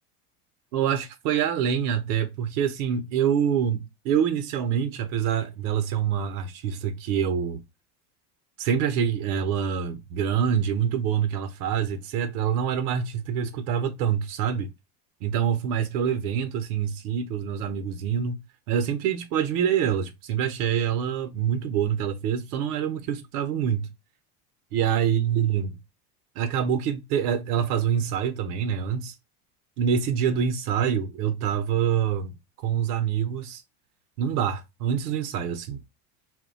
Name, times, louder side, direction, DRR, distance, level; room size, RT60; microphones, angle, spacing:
voice 1, 0.7-7.6 8.6-14.7 15.2-18.4 18.7-23.9 24.7-25.8 26.4-29.1 29.8-32.4 32.6-33.6 34.2-35.8, right 8 dB, 70° right, 0.6 m, -26 dB
2.2 x 2.1 x 3.8 m
hypercardioid pair, 95°, 47 cm